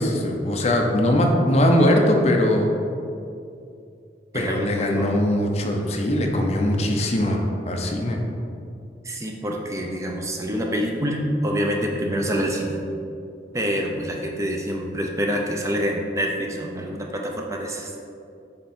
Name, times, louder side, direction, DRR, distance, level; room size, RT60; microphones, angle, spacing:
voice 1, 0.0-2.7 4.3-8.2, left 1 dB, 35° left, 2 dB, 0.6 m, -21 dB
voice 2, 4.3-5.1 9.0-12.8 13.5-17.9, equal, 15° right, 0 dB, 0.5 m, -26 dB
7.6 x 3.6 x 4.3 m, 2.5 s
head